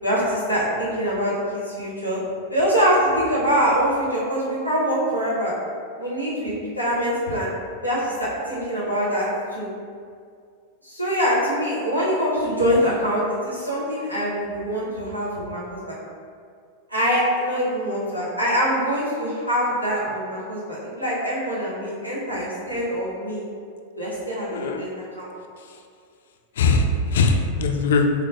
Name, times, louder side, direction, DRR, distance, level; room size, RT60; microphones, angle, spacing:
voice 1, 0.0-2.2 2.5-5.5 6.0-7.5 7.8-9.3 9.5-9.7 10.8-15.9 16.9-23.4 23.9-24.9 25.2-25.3, equal, 90° right, -8 dB, 0.9 m, -24 dB
voice 2, 24.5-24.8 25.6-25.8 26.6-28.1, left 3 dB, 60° left, 4 dB, 0.3 m, -21 dB
3.4 x 3.2 x 2.4 m, 2.2 s
figure-of-eight pair, 90°, 0 cm